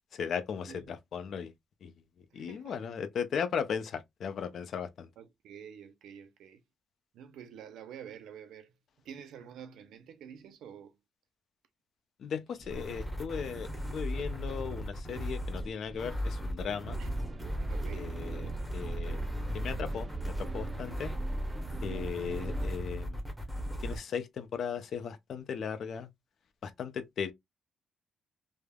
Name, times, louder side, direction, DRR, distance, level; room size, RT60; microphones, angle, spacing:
voice 1, 0.1-1.5 1.8-1.9 2.3-5.1 12.2-17.0 17.9-19.2 19.5-21.1 21.8-23.2 23.8-26.1 26.6-27.3, left 7 dB, 60° left, 0.5 m, -37 dB
voice 2, 2.3-2.8 5.2-6.6 7.1-8.7 9.0-11.0 17.0-17.4 17.7-18.2, right 8 dB, 80° right, 0.5 m, -48 dB
sound 1, 12.6-24.0, equal, ahead, 0.8 m, -37 dB
sound 2, 16.9-22.8, right 2 dB, 25° right, 0.4 m, -39 dB
3.2 x 2.0 x 2.2 m
cardioid pair, 90°, 0 cm